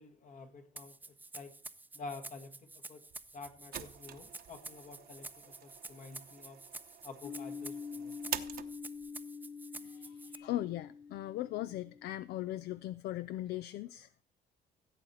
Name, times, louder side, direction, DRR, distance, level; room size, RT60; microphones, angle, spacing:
voice 1, 0.0-1.5 1.9-3.0 3.3-6.7 7.0-8.2, left 3 dB, 50° left, 1.8 m, -49 dB
Rattle (instrument), 0.8-10.4, right 2 dB, 10° right, 0.7 m, -49 dB
sound 1, 3.1-9.1, right 11 dB, 60° right, 0.9 m, -46 dB
sound 2, 7.2-12.7, left 6 dB, 85° left, 1.8 m, -46 dB
voice 2, 9.8-14.1, left 14 dB, 70° left, 0.4 m, -39 dB
16.0 x 7.8 x 4.2 m
cardioid pair, 110°, 17 cm